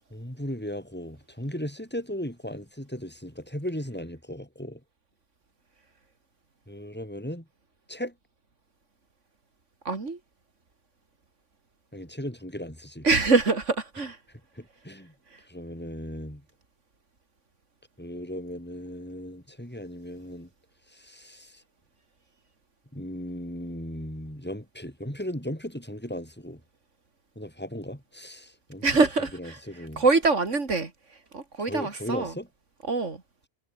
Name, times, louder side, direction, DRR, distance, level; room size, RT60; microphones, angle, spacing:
voice 1, 0.1-4.8 6.7-7.5 7.9-8.1 11.9-13.1 14.5-15.1 15.5-16.4 18.0-20.5 20.9-21.6 22.9-26.6 27.4-28.9 29.3-30.0 31.6-32.5, equal, 10° left, 7.4 m, -37 dB
voice 2, 9.8-10.2 13.0-14.2 28.8-29.6 30.0-30.9 31.3-32.3 32.9-33.2, right 3 dB, 85° right, 3.2 m, -24 dB
omnidirectional pair, 1.2 m